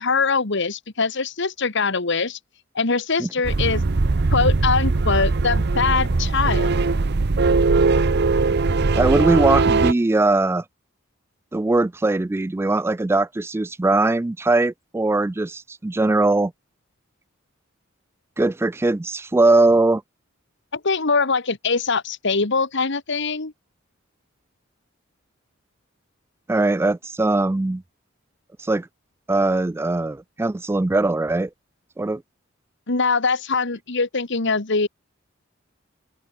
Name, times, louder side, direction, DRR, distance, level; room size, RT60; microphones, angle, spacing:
voice 1, 0.0-2.4 2.8-3.8 4.3-6.8 20.7-23.5 32.9-34.9, left 4 dB, 65° left, 1.8 m, -22 dB
sound 1, 3.4-9.9, right 3 dB, 55° right, 0.7 m, -20 dB
voice 2, 9.0-10.6 11.5-16.5 18.4-20.0 26.5-27.8 28.6-28.9 29.3-31.5 32.0-32.2, right 2 dB, 10° right, 0.3 m, -20 dB
open air
head